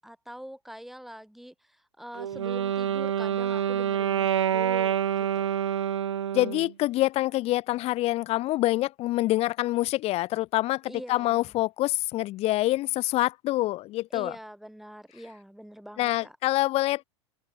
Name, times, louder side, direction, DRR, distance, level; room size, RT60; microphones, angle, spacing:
voice 1, 0.0-5.5 10.8-11.5 14.1-16.4, equal, ahead, 6.7 m, -44 dB
Wind instrument woodwind instrument, 2.1-6.7, right 9 dB, 85° right, 1.8 m, -27 dB
voice 2, 6.3-10.8 11.1-14.3 16.0-17.0, left 17 dB, 45° left, 1.0 m, -26 dB
hypercardioid pair, 95°, 15 cm